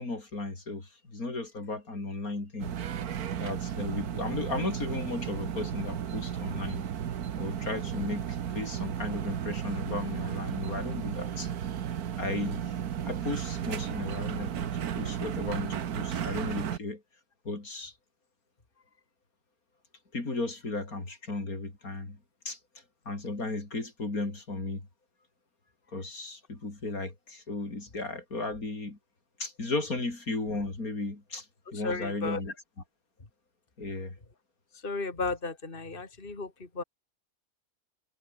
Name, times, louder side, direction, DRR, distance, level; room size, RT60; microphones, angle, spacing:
voice 1, 0.0-2.7 3.4-6.8 7.4-11.5 12.2-12.7 13.1-14.7 14.9-17.0 17.4-17.9 20.1-22.2 22.4-22.6 23.1-24.8 25.9-29.0 29.4-31.4 31.7-32.5 33.8-34.1, left 3 dB, 70° left, 5.0 m, -35 dB
sound 1, 2.6-16.8, right 9 dB, 80° right, 1.6 m, -34 dB
voice 2, 31.7-32.4 34.7-36.8, left 3 dB, 35° left, 3.0 m, -34 dB
omnidirectional pair, 1.6 m